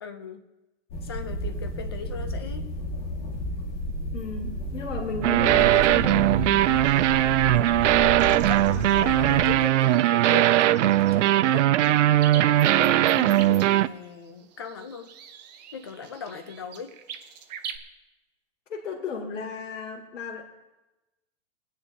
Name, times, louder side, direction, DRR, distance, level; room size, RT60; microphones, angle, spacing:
voice 1, 0.0-0.4 1.0-2.7 8.5-11.7 12.3-15.1 15.7-16.9, left 5 dB, 20° left, 7 dB, 0.4 m, -38 dB
sound 1, 0.9-9.5, equal, 40° left, 2.6 m, -32 dB
voice 2, 4.1-6.9 13.1-13.5 18.7-20.4, left 4 dB, 90° left, -2 dB, 2.5 m, -35 dB
sound 2, 5.2-13.9, right 14 dB, 70° right, 0.5 m, -20 dB
sound 3, 5.6-17.8, right 8 dB, 35° right, 0.8 m, -43 dB
28.5 x 9.8 x 2.7 m, 1.0 s
hypercardioid pair, 170°, 37 cm